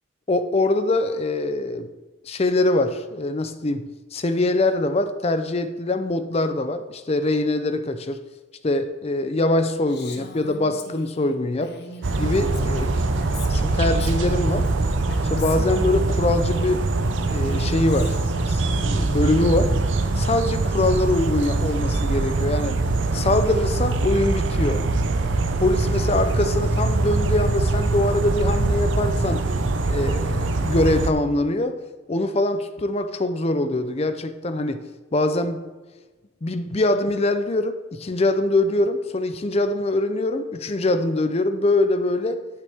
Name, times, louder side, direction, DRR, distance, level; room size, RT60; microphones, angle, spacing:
voice 1, 0.3-1.9 2.3-8.3 8.6-11.8 12.2-12.9 13.5-14.7 15.2-16.9 17.3-18.2 18.5-19.8 20.2-22.8 23.1-24.9 25.6-29.5 29.9-31.8 32.1-34.8 35.1-35.7 36.4-42.5, left 2 dB, 30° left, 0.5 m, -23 dB
Female speech woman speaking, 9.9-16.2 17.1-18.4, left 3 dB, 55° left, 0.9 m, -40 dB
sound 1, 12.0-31.1, right 2 dB, 65° right, 0.7 m, -23 dB
9.6 x 8.1 x 3.5 m
head